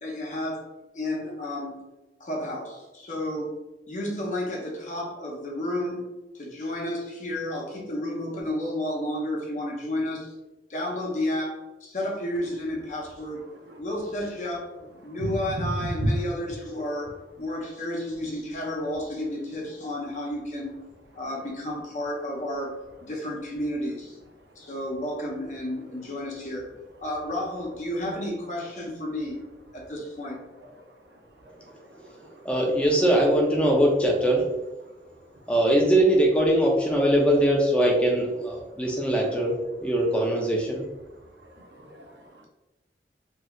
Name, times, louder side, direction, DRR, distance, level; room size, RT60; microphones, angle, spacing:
voice 1, 0.0-0.7 0.9-1.8 2.2-3.5 3.9-6.0 6.3-10.3 10.7-13.5 13.8-14.7 15.0-20.7 21.2-24.2 24.6-26.7 27.0-29.4 29.7-30.4, left 1 dB, 45° left, -2 dB, 0.7 m, -31 dB
voice 2, 13.5-13.8 15.0-16.2 31.4-31.7 32.0-32.3 41.4-42.5, equal, 80° right, 3 dB, 0.5 m, -32 dB
voice 3, 32.4-34.4 35.5-39.5 39.8-40.8, right 1 dB, 5° left, -2 dB, 0.5 m, -21 dB
3.2 x 2.7 x 2.4 m, 1.1 s
head